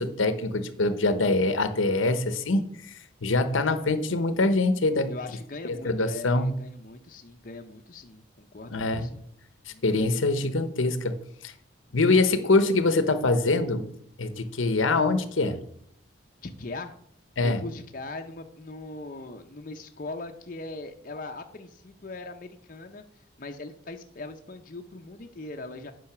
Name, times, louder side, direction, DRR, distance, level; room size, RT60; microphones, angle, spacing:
voice 1, 0.0-2.6 3.2-5.1 5.6-6.6 8.7-9.1 9.8-11.2 11.4-11.5 11.9-13.8 14.2-15.6 17.4-17.6, left 2 dB, 80° left, 11 dB, 0.9 m, -24 dB
voice 2, 5.1-9.2 9.7-9.8 11.9-12.2 16.4-16.9 17.4-23.0 23.4-25.9, left 2 dB, 40° left, 4 dB, 0.6 m, -40 dB
8.7 x 5.4 x 6.0 m, 0.68 s
head